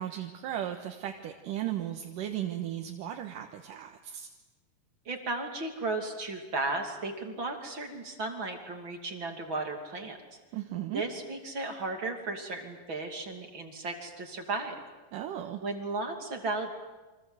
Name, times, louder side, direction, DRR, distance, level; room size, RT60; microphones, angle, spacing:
voice 1, 0.0-4.3 10.5-11.0 15.1-15.6, right 11 dB, 75° right, 4 dB, 2.9 m, -36 dB
voice 2, 5.0-10.2 10.9-14.8 15.6-16.7, right 3 dB, 35° right, 4 dB, 3.3 m, -35 dB
29.0 x 25.5 x 8.0 m, 1.2 s
omnidirectional pair, 3.9 m